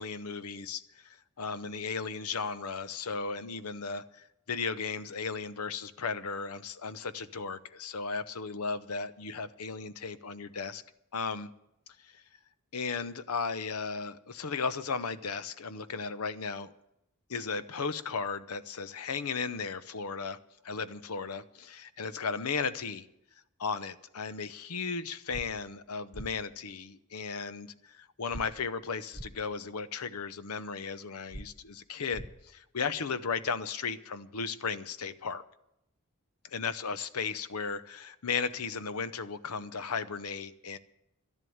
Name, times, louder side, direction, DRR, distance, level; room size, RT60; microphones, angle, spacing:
voice 1, 0.0-10.8 11.1-11.5 12.0-12.2 12.7-16.7 17.3-20.4 20.6-23.1 23.6-35.4 36.4-40.8, left 5 dB, 80° left, 14 dB, 0.8 m, -35 dB
sound 1, 25.3-25.5 26.1-26.3 28.3-28.4 29.1-29.3 31.3-31.4 32.1-32.3, equal, 5° right, 0.7 m, -41 dB
12.5 x 11.0 x 7.9 m, 0.83 s
head